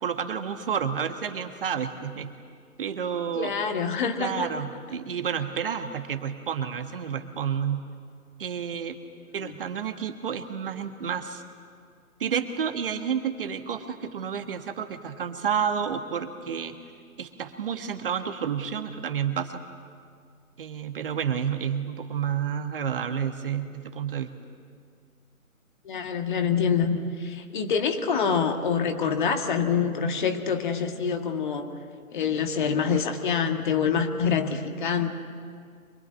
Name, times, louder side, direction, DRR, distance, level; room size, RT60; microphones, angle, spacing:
voice 1, 0.0-2.3 2.8-3.5 4.2-7.9 8.4-9.0 9.3-11.4 12.2-16.8 17.2-19.6 20.6-24.3, right 7 dB, 40° right, 7 dB, 1.4 m, -30 dB
voice 2, 3.4-4.5 25.9-31.7 32.1-35.1, left 6 dB, 35° left, 6 dB, 1.8 m, -26 dB
25.0 x 20.0 x 9.5 m, 2.1 s
figure-of-eight pair, 145°, 43 cm